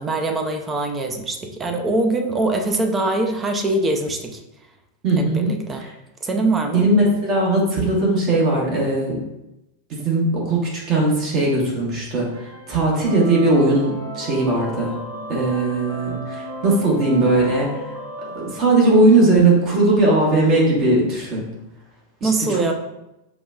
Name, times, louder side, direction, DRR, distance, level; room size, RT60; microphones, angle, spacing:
voice 1, 0.0-4.4 5.2-5.9 6.2-6.9 22.2-22.7, right 2 dB, 20° right, 4 dB, 0.4 m, -23 dB
voice 2, 5.0-5.5 5.8-5.9 6.7-9.2 9.9-14.9 15.3-17.7 18.3-21.5 22.2-22.7, right 2 dB, 35° right, -3 dB, 1.0 m, -19 dB
sound 1, 12.3-19.3, equal, 75° right, 0.8 m, -35 dB
5.1 x 2.1 x 2.4 m, 0.93 s
figure-of-eight pair, 90°, 0 cm